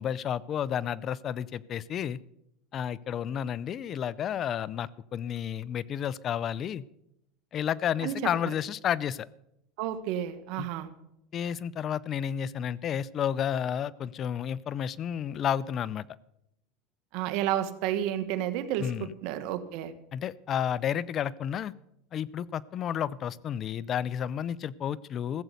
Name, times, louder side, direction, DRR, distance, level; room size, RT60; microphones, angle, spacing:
voice 1, 0.0-2.2 2.7-6.8 7.5-9.3 10.6-10.7 11.3-16.1 18.8-19.1 20.1-21.7 22.1-25.4, left 9 dB, 40° left, 21 dB, 0.5 m, -31 dB
voice 2, 9.8-10.9 17.1-19.9, right 11 dB, 65° right, 12 dB, 1.4 m, -31 dB
15.5 x 8.1 x 7.9 m, 0.80 s
supercardioid pair, 110°, 0 cm